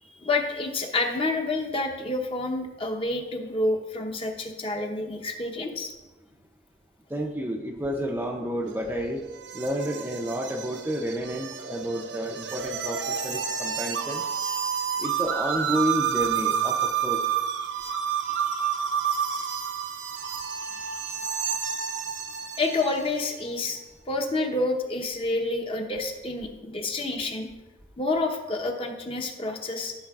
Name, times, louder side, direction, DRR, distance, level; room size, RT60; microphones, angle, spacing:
voice 1, 0.0-5.9 18.3-18.7 20.6-21.1 22.6-23.8 24.1-27.5 28.0-29.9, left 2 dB, 30° left, 3 dB, 0.9 m, -29 dB
voice 2, 7.1-9.2 9.5-14.2 15.0-17.2, equal, 10° right, 2 dB, 0.5 m, -30 dB
sound 1, 8.7-23.3, right 7 dB, 85° right, 0.7 m, -30 dB
14.0 x 6.6 x 2.4 m, 1.1 s
head